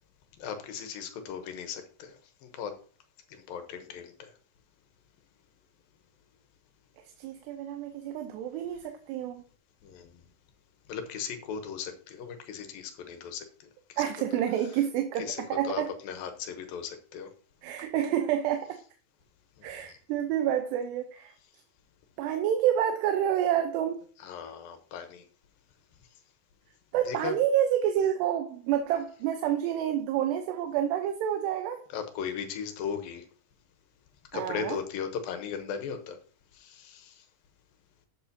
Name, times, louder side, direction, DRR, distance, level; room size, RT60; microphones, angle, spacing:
voice 1, 0.4-2.2 2.4-2.7 3.3-4.3 9.8-10.1 10.9-13.5 13.9-14.0 15.2-17.3 19.6-19.7 24.2-25.2 27.1-27.3 31.9-33.2 34.3-36.2 36.5-37.2, left 7 dB, 70° left, 2.5 m, -37 dB
voice 2, 7.2-9.4 14.0-15.9 17.6-18.8 19.6-21.3 22.2-24.0 26.9-31.8 34.3-34.8, right 10 dB, 85° right, 3.0 m, -28 dB
12.5 x 7.6 x 2.8 m
omnidirectional pair, 4.8 m